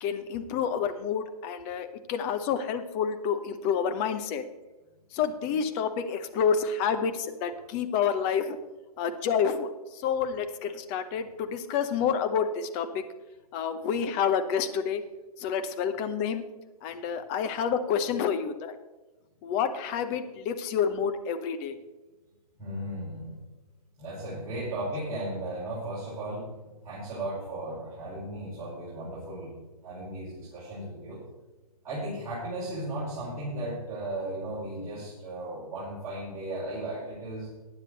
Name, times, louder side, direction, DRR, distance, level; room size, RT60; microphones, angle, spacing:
voice 1, 0.0-4.4 5.1-8.6 9.0-13.0 13.5-15.0 15.4-16.4 16.8-18.7 19.4-21.8, left 7 dB, 25° left, 10 dB, 0.9 m, -29 dB
voice 2, 22.6-23.3 24.0-26.5 26.8-29.5 29.8-31.2 31.8-37.5, right 1 dB, 15° right, -11 dB, 5.0 m, -35 dB
15.0 x 9.7 x 4.0 m, 1.2 s
hypercardioid pair, 140°, 20 cm